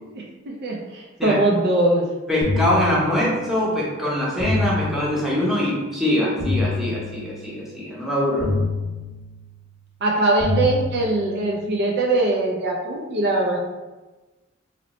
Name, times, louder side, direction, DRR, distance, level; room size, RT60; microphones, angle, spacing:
voice 1, 0.6-2.1 10.0-13.6, right 2 dB, 55° right, -1 dB, 0.4 m, -21 dB
voice 2, 2.3-8.5, left 1 dB, ahead, -6 dB, 0.8 m, -23 dB
sound 1, 2.4-3.6 4.4-5.6 6.4-7.6 8.4-9.6 10.4-11.6, left 3 dB, 45° left, 0.7 m, -27 dB
2.8 x 2.1 x 4.0 m, 1.2 s
head